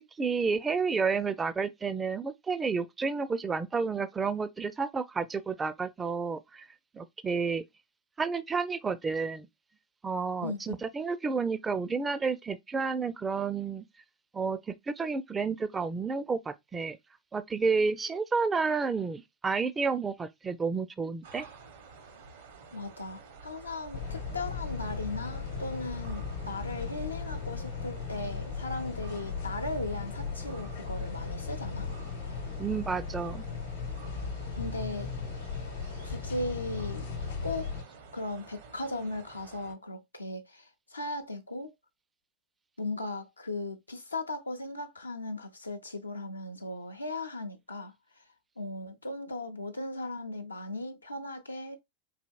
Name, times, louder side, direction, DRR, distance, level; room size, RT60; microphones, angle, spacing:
voice 1, 0.2-6.7 6.9-7.6 8.2-9.5 10.0-13.8 14.3-17.0 17.3-21.5 32.6-33.4, right 5 dB, 15° right, 0.4 m, -30 dB
voice 2, 10.4-10.7 22.7-31.9 32.2-32.4 34.5-35.1 36.0-37.1 37.4-37.7 38.1-41.7 42.8-48.2 48.6-51.8, left 2 dB, 90° left, 0.5 m, -37 dB
sound 1, 21.2-39.7, right 4 dB, 65° right, 0.7 m, -50 dB
sound 2, 23.9-37.8, left 5 dB, 70° left, 0.9 m, -37 dB
4.1 x 2.8 x 2.2 m
figure-of-eight pair, 90°, 0 cm